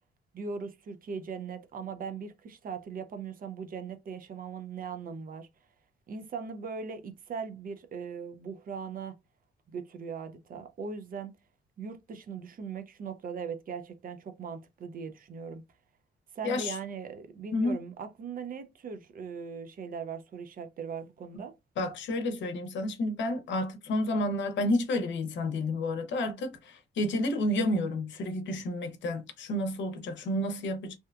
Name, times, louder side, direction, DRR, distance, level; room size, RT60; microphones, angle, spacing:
voice 1, 0.3-5.5 6.1-9.2 9.7-11.3 11.8-15.6 16.3-21.5, right 5 dB, 45° right, 0.5 m, -39 dB
voice 2, 16.4-16.8 17.5-17.8 21.8-31.0, left 1 dB, 70° left, 0.7 m, -30 dB
2.7 x 2.2 x 2.3 m
cardioid pair, 90°, 20 cm